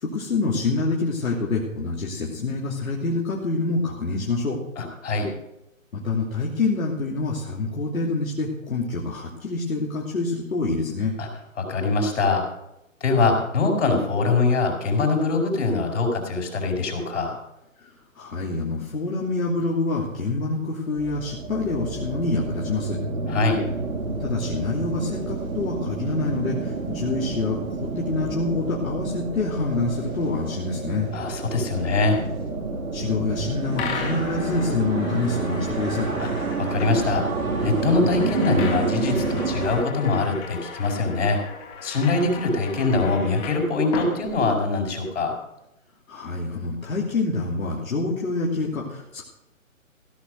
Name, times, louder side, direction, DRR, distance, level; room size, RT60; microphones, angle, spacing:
voice 1, 0.0-4.6 5.9-11.2 18.2-23.0 24.2-31.1 32.9-36.1 46.1-49.2, left 3 dB, 75° left, -3 dB, 2.8 m, -26 dB
voice 2, 4.8-5.3 11.2-11.3 11.6-12.4 13.0-17.4 23.3-23.6 31.1-32.2 36.2-37.2 37.6-41.4 41.8-45.3, left 3 dB, 60° left, 1 dB, 4.9 m, -23 dB
sound 1, 20.9-39.8, right 3 dB, 90° right, 2.6 m, -29 dB
sound 2, 33.8-45.0, left 5 dB, 15° left, 1.2 m, -37 dB
16.0 x 6.8 x 6.4 m, 0.88 s
hypercardioid pair, 150°, 41 cm